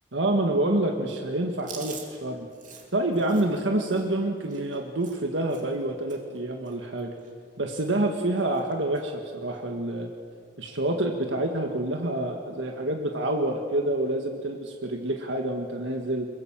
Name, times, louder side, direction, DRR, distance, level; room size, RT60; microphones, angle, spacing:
voice 1, 0.1-2.5 2.9-7.1 7.6-10.1 10.6-16.3, right 1 dB, 75° right, 3 dB, 1.8 m, -27 dB
Chewing mastication, 1.6-5.8 6.1-6.4 6.6-7.6 7.8-8.1 8.4-9.1 9.5-9.6 10.7-11.1, right 6 dB, 40° right, 3.0 m, -47 dB
23.0 x 22.5 x 7.5 m, 2.2 s
head